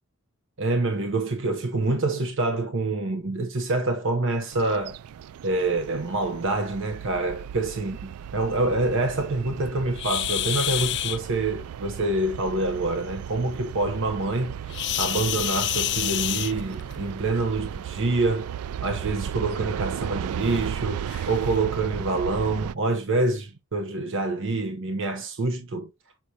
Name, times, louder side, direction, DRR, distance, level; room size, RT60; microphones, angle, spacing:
voice 1, 0.6-5.0 5.4-14.6 15.0-18.5 18.8-25.9, right 2 dB, 60° right, 0.9 m, -26 dB
sound 1, 4.5-22.7, right 9 dB, 80° right, 0.3 m, -35 dB
sound 2, 10.0-11.2 14.7-17.0 18.2-18.4 18.9-19.0 19.6-19.7 20.5-20.6 21.1-21.3, left 13 dB, 55° left, 0.5 m, -28 dB
6.5 x 5.8 x 2.8 m
head